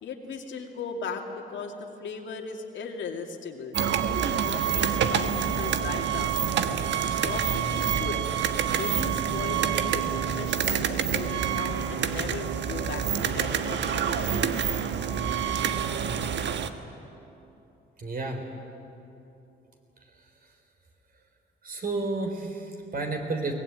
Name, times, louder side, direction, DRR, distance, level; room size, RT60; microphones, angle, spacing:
voice 1, 0.0-3.7 4.2-6.3 6.7-8.2 8.7-14.3, left 5 dB, 70° left, 2 dB, 2.6 m, -38 dB
sound 1, 3.7-16.7, right 8 dB, 65° right, 1.3 m, -27 dB
voice 2, 18.0-18.4 21.6-23.5, right 3 dB, 45° right, 4 dB, 4.0 m, -31 dB
23.0 x 18.5 x 9.1 m, 2.9 s
cardioid pair, 90°, 20 cm